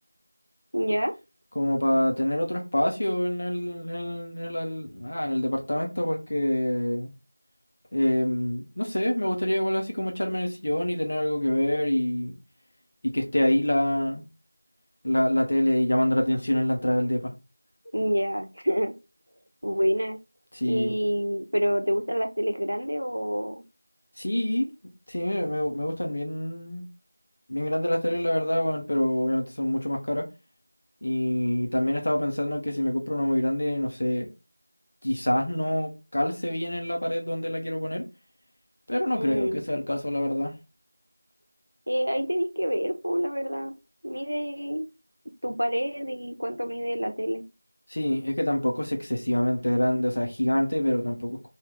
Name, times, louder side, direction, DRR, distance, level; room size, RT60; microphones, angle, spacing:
voice 1, 0.7-1.1 17.9-18.9 19.6-20.2 20.6-23.6 39.1-39.6 41.9-43.7 44.0-44.9 45.4-47.4, equal, 80° right, 0.8 m, -27 dB
voice 2, 1.5-7.1 7.9-12.4 13.0-14.3 15.0-17.3 20.5-20.9 24.2-24.7 25.1-26.8 27.5-30.3 31.0-34.3 35.0-38.0 38.9-40.5 47.9-51.5, left 1 dB, 40° left, 1.0 m, -26 dB
3.5 x 2.7 x 3.7 m
figure-of-eight pair, 175°, 0 cm